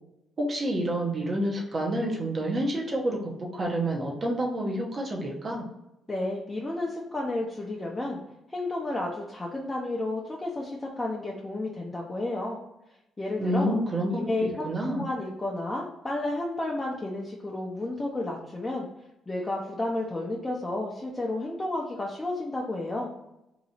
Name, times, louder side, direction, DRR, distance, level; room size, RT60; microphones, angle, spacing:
voice 1, 0.4-5.6 13.4-15.0, right 1 dB, 40° right, -1 dB, 0.9 m, -28 dB
voice 2, 6.1-8.2 8.5-12.6 13.2-13.8 14.1-18.9 19.3-23.1, left 2 dB, 20° left, -3 dB, 0.7 m, -31 dB
3.0 x 2.6 x 4.1 m, 0.89 s
cardioid pair, 90°, 0 cm